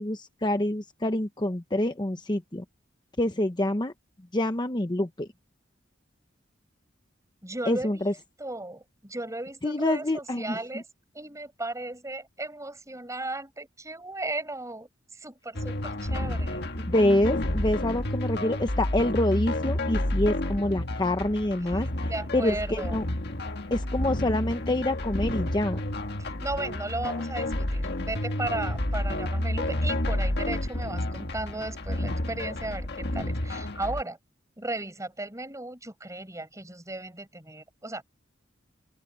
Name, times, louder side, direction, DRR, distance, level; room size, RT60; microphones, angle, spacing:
voice 1, 0.0-2.6 3.2-3.9 4.3-5.3 7.7-8.1 9.6-10.8 16.9-23.0 23.7-25.8, left 1 dB, 25° left, 0.9 m, -26 dB
voice 2, 7.4-8.1 8.4-10.8 11.1-14.9 15.1-16.7 21.7-23.0 26.2-34.2 34.6-38.0, right 2 dB, 15° right, 7.7 m, -36 dB
sound 1, 15.5-34.0, left 1 dB, 60° left, 1.7 m, -30 dB
open air
head